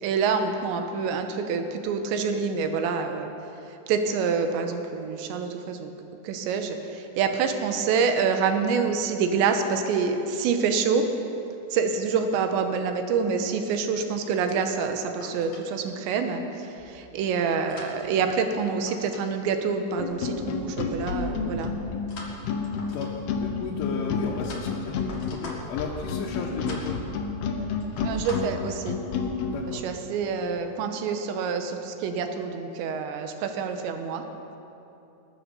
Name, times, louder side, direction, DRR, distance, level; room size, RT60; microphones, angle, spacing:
voice 1, 0.0-3.3 3.9-5.9 6.2-11.1 11.7-16.4 16.9-21.7 28.0-29.0 29.7-34.2, right 5 dB, 80° right, 6 dB, 3.1 m, -26 dB
sound 1, 14.5-15.6 16.5-16.9 17.4-19.3 19.5-19.8 22.1-23.4 24.0-25.9 26.2-26.4 26.6-27.0 27.4-27.5 27.8-28.4, left 2 dB, 50° left, 2.3 m, -44 dB
sound 2, 20.0-29.6, left 5 dB, 70° left, 2.8 m, -30 dB
voice 2, 22.9-25.0 25.3-27.0 29.4-29.8, left 5 dB, 85° left, -3 dB, 3.5 m, -34 dB
20.0 x 10.0 x 6.9 m, 2.9 s
omnidirectional pair, 5.5 m